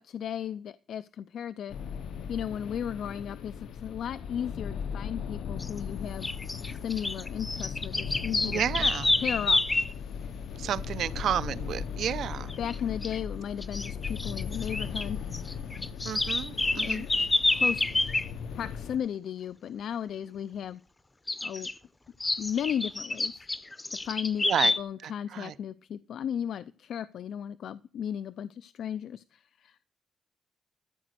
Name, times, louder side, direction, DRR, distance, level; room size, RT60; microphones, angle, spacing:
voice 1, 0.0-1.8 2.3-6.3 6.6-8.6 9.2-9.6 12.6-15.2 16.7-17.1 17.5-17.8 18.6-20.8 21.4-21.7 22.4-23.4 24.0-24.5 24.8-29.8, left 9 dB, 65° left, 0.5 m, -35 dB
sound 1, 1.7-19.0, left 7 dB, 85° left, 1.0 m, -38 dB
sound 2, 5.6-5.8 6.2-9.9 12.5-12.8 13.0-13.2 13.6-15.1 15.3-18.3 21.3-21.7 22.2-24.8, left 2 dB, 15° left, 0.7 m, -28 dB
voice 2, 8.5-9.1 10.6-12.5 16.0-17.1 24.4-24.7 25.0-25.5, right 9 dB, 65° right, 0.6 m, -31 dB
13.5 x 5.1 x 8.1 m
wide cardioid pair, 165°, 0 cm